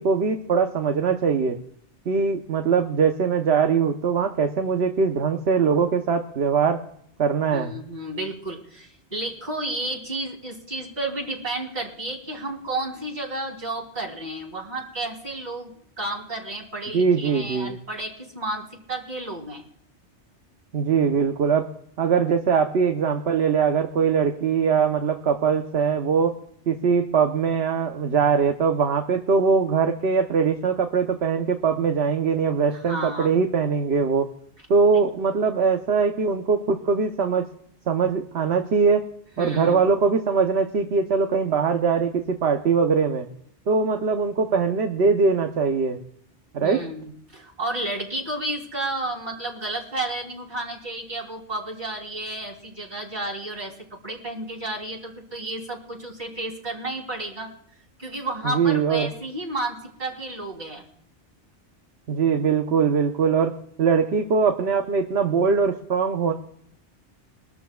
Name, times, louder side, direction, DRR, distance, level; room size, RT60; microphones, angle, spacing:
voice 1, 0.0-1.6 2.1-6.8 7.2-7.7 16.9-17.7 20.7-21.7 22.0-26.4 26.7-34.3 34.7-37.4 37.9-39.0 39.4-43.3 43.7-46.0 46.5-46.8 58.4-59.1 62.1-66.3, right 5 dB, 65° right, 4 dB, 1.1 m, -22 dB
voice 2, 7.5-15.7 16.0-19.6 32.7-33.4 39.4-39.9 46.6-57.5 58.0-60.8, right 2 dB, 40° right, -1 dB, 3.4 m, -32 dB
23.0 x 13.0 x 2.3 m, 0.68 s
omnidirectional pair, 1.2 m